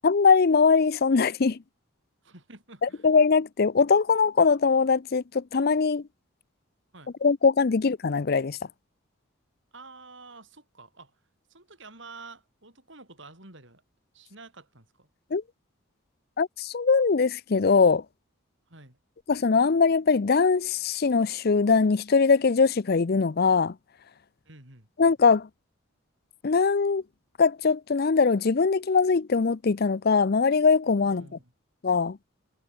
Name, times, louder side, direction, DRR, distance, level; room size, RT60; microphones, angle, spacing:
voice 1, 0.0-1.6 2.8-6.0 7.2-8.6 15.3-15.4 16.4-18.0 19.3-23.7 25.0-25.5 26.4-27.0 27.4-31.2 31.8-32.2, left 5 dB, 50° left, 0.5 m, -22 dB
voice 2, 2.2-3.1 6.9-7.1 9.7-11.2 11.5-13.8 14.1-15.1 18.7-19.0 24.4-24.9 31.0-31.5, right 3 dB, 60° right, 6.3 m, -49 dB
head